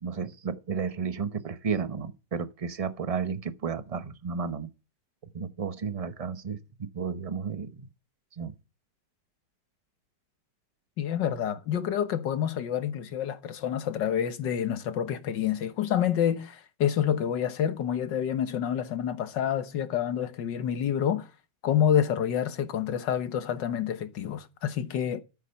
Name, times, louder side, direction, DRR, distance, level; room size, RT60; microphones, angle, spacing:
voice 1, 0.0-4.7 5.3-7.9 8.4-8.5, right 6 dB, 30° right, 0.6 m, -33 dB
voice 2, 11.0-21.3 21.6-25.2, left 9 dB, 85° left, 1.9 m, -28 dB
13.5 x 8.9 x 5.8 m
omnidirectional pair, 1.9 m